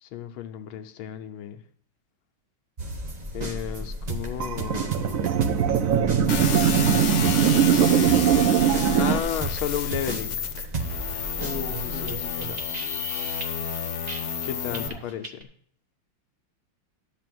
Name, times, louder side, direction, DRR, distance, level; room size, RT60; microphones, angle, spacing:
voice 1, 0.0-1.6 3.3-5.3 5.6-6.3 9.0-10.4 11.8-12.3 14.4-15.5, left 10 dB, 85° left, 7 dB, 1.6 m, -33 dB
sound 1, 2.8-14.4 14.7-15.4, right 2 dB, 45° right, 0.5 m, -34 dB
sound 2, 4.4-9.2, right 8 dB, 80° right, 0.7 m, -21 dB
sound 3, 6.3-14.9, left 7 dB, 65° left, 1.6 m, -31 dB
voice 2, 11.4-12.5 14.7-15.0, left 1 dB, 20° left, -2 dB, 0.9 m, -36 dB
12.0 x 4.3 x 7.6 m, 0.62 s
omnidirectional pair, 2.2 m